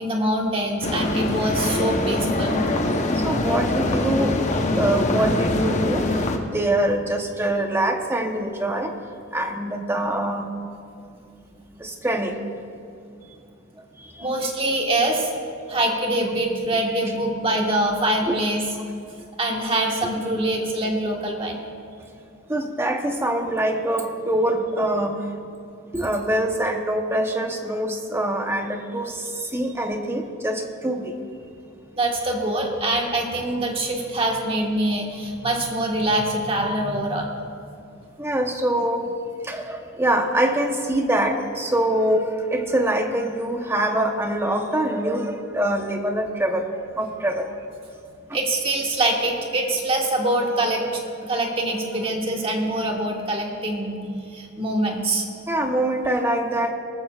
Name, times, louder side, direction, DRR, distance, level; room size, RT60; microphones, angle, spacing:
voice 1, 0.0-2.5 14.2-15.3 15.7-18.6 19.4-21.6 31.9-37.3 48.3-54.0 54.3-55.3, right 1 dB, 25° right, 1 dB, 1.5 m, -24 dB
sound 1, 0.8-6.4, left 2 dB, 35° left, 0.9 m, -23 dB
voice 2, 3.2-4.3 4.7-6.0 6.5-8.9 9.3-10.5 11.8-12.3 18.3-18.4 22.5-25.2 25.9-29.2 29.5-31.1 38.2-39.1 39.4-46.7 47.0-47.5 55.5-56.7, right 1 dB, 10° right, 4 dB, 0.9 m, -24 dB
18.5 x 14.0 x 2.4 m, 2.5 s
head